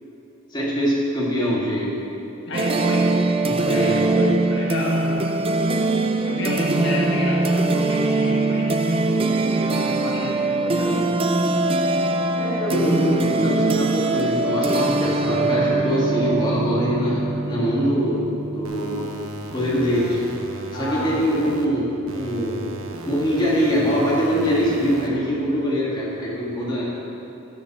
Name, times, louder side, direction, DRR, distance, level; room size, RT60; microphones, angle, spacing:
voice 1, 0.5-1.9 3.5-4.3 12.4-18.2 18.5-19.0 19.5-20.2 20.7-22.7 23.0-27.0, equal, 20° left, -6 dB, 2.2 m, -23 dB
voice 2, 2.5-3.1 3.5-4.0 4.5-5.2 6.3-11.1 20.7-21.1, left 1 dB, 55° left, -4 dB, 1.5 m, -30 dB
sound 1, 2.5-19.1, right 2 dB, 25° right, 0.4 m, -22 dB
sound 2, 18.6-21.6 22.1-25.1, right 1 dB, 80° right, 1.1 m, -36 dB
12.0 x 7.1 x 6.1 m, 2.9 s
head